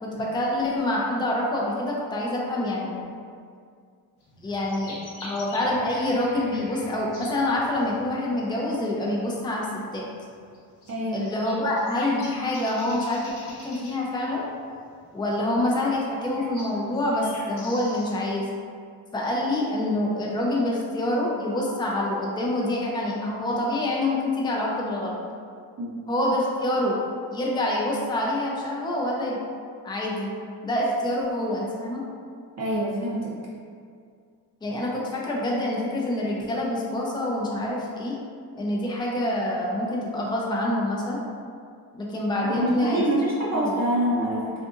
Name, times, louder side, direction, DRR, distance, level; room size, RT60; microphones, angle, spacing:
voice 1, 0.0-3.0 4.4-9.7 9.9-10.1 11.1-14.4 15.1-18.5 19.1-25.2 26.1-27.0 27.3-29.4 29.8-30.3 30.6-32.0 34.6-38.2 38.6-41.2 41.9-43.0 43.5-43.7, left 1 dB, 10° left, -3 dB, 0.4 m, -26 dB
sound 1, 4.2-18.3, left 1 dB, 60° left, 0.9 m, -45 dB
voice 2, 10.9-11.3 25.8-25.9 32.6-33.3 42.4-44.5, right 1 dB, 40° right, -6 dB, 0.7 m, -25 dB
2.6 x 2.5 x 2.5 m, 2.2 s
supercardioid pair, 65°, 43 cm